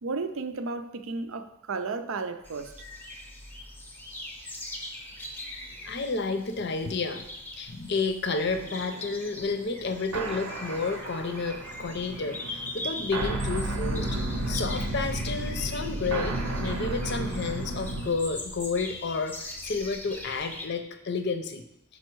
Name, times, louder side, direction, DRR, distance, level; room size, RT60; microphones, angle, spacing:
voice 1, 0.0-2.7, right 4 dB, 70° right, 9 dB, 0.5 m, -33 dB
sound 1, 2.4-20.7, left 1 dB, 10° left, 0.6 m, -42 dB
voice 2, 5.8-7.2 7.6-14.1 14.5-21.6, left 4 dB, 50° left, 7 dB, 0.6 m, -31 dB
sound 2, 8.4-18.1, right 1 dB, 90° right, 0.9 m, -33 dB
6.2 x 5.3 x 4.6 m, 0.79 s
head